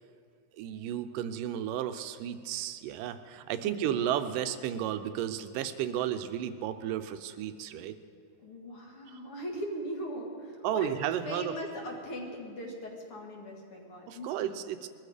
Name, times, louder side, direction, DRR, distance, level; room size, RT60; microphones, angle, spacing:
voice 1, 0.6-8.0 10.6-11.5 14.1-14.9, right 10 dB, 85° right, 10 dB, 2.3 m, -33 dB
voice 2, 3.6-4.1 8.4-14.6, equal, 50° left, 0 dB, 2.4 m, -40 dB
21.0 x 13.5 x 5.0 m, 2.2 s
omnidirectional pair, 3.7 m